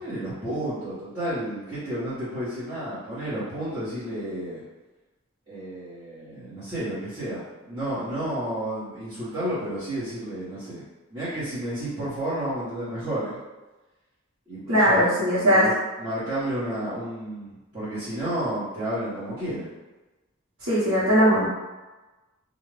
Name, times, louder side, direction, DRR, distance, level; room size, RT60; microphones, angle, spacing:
voice 1, 0.0-4.6 5.5-10.8 11.1-13.4 14.5-15.1 15.5-15.7 16.0-19.7, right 1 dB, 25° right, -16 dB, 1.1 m, -31 dB
voice 2, 14.7-15.7 20.6-21.5, equal, 80° right, -13 dB, 1.1 m, -19 dB
2.5 x 2.4 x 3.2 m, 1.1 s
head